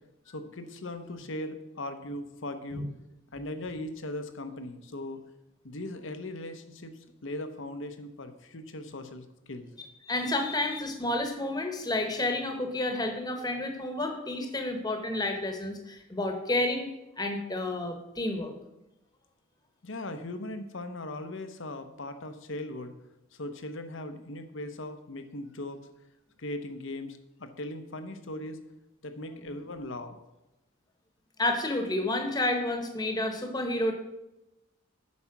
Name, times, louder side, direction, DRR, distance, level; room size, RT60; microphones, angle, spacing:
voice 1, 0.3-2.9 3.3-5.2 5.6-9.7 19.8-22.9 23.3-25.8 26.4-28.6 29.0-30.2, left 1 dB, 65° left, 8 dB, 0.9 m, -39 dB
voice 2, 10.1-16.9 17.2-18.5 31.4-33.9, left 2 dB, 20° left, 5 dB, 1.1 m, -30 dB
8.4 x 5.6 x 5.9 m, 0.93 s
head